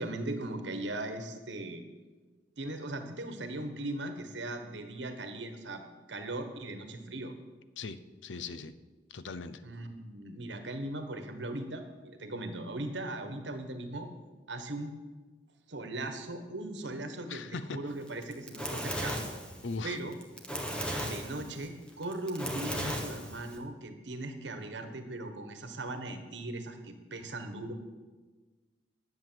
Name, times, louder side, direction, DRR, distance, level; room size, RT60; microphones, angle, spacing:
voice 1, 0.0-1.8 2.6-5.8 6.1-7.3 9.6-14.1 14.5-14.9 15.7-17.5 17.7-19.3 19.8-20.2 21.0-27.7, right 2 dB, 70° right, 7 dB, 1.4 m, -38 dB
voice 2, 7.8-8.7 9.1-9.6 17.3-17.9 19.6-20.0 20.7-20.8, left 4 dB, 90° left, 14 dB, 0.6 m, -39 dB
Fire, 18.1-23.6, equal, 5° left, 1.3 m, -36 dB
10.5 x 7.9 x 7.6 m, 1.3 s
head